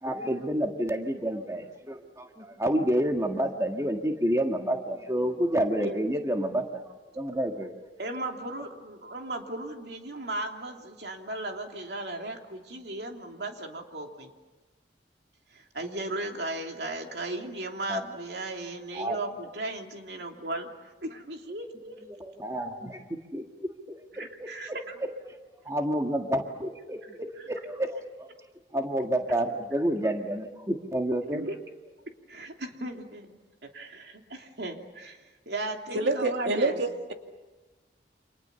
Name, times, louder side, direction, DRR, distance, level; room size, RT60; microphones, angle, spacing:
voice 1, 0.0-7.7 17.9-18.0 18.9-19.2 22.2-23.5 24.2-24.3 25.7-28.3 28.7-31.5, right 1 dB, 15° right, 3 dB, 1.7 m, -29 dB
voice 2, 8.0-14.3 15.5-22.0 24.1-24.9 31.3-31.5 32.3-36.9, right 2 dB, 65° right, 2 dB, 3.1 m, -36 dB
voice 3, 35.9-37.1, right 2 dB, 85° right, 4 dB, 2.5 m, -27 dB
29.5 x 27.0 x 7.0 m, 1.2 s
head